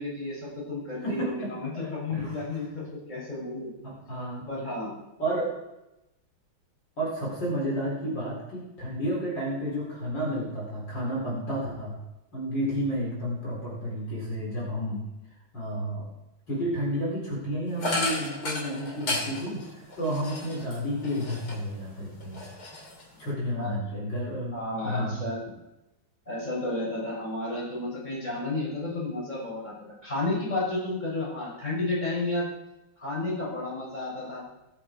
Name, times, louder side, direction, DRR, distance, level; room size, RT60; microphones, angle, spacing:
voice 1, 0.0-3.7 4.5-4.9 23.5-23.8 24.5-25.4 26.3-29.7 30.0-32.5 33.0-34.4, left 2 dB, 20° left, -6 dB, 6.4 m, -32 dB
voice 2, 1.0-1.5 1.7-1.8 2.1-2.6 3.8-4.5 5.2-5.5 7.0-12.0 12.3-15.0 15.5-16.0 16.5-22.4 23.2-25.2, equal, 55° left, -4 dB, 4.9 m, -31 dB
sound 1, 17.8-21.8 22.2-23.3, left 2 dB, 90° left, 4.1 m, -33 dB
19.5 x 10.0 x 4.5 m, 0.94 s
omnidirectional pair, 2.3 m